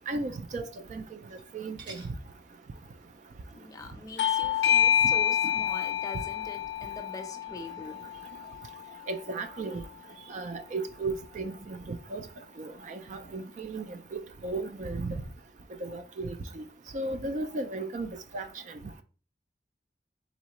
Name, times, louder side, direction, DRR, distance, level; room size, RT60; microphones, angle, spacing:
voice 1, 0.1-0.6 0.9-1.0 1.5-2.0 9.1-9.8 10.3-12.2 12.6-15.2 15.8-16.6 16.9-18.5, right 3 dB, 45° right, 0.3 m, -35 dB
sound 1, 1.3-1.5 1.8-2.2 4.4-4.5 5.4-5.8, right 1 dB, 85° right, 1.3 m, -47 dB
voice 2, 3.5-8.0, left 2 dB, 20° left, 0.6 m, -43 dB
Bell / Doorbell, 4.2-9.4, left 10 dB, 75° left, 0.3 m, -28 dB
4.0 x 3.6 x 3.0 m
head